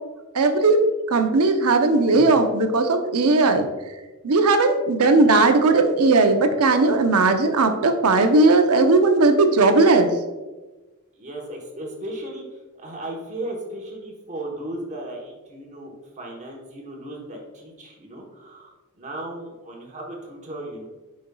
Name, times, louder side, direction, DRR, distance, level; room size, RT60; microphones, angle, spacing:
voice 1, 0.3-3.7 4.2-10.1, right 3 dB, 85° right, 6 dB, 0.7 m, -17 dB
voice 2, 11.2-20.8, right 1 dB, 35° right, 0 dB, 1.1 m, -36 dB
8.7 x 5.3 x 2.3 m, 1.2 s
head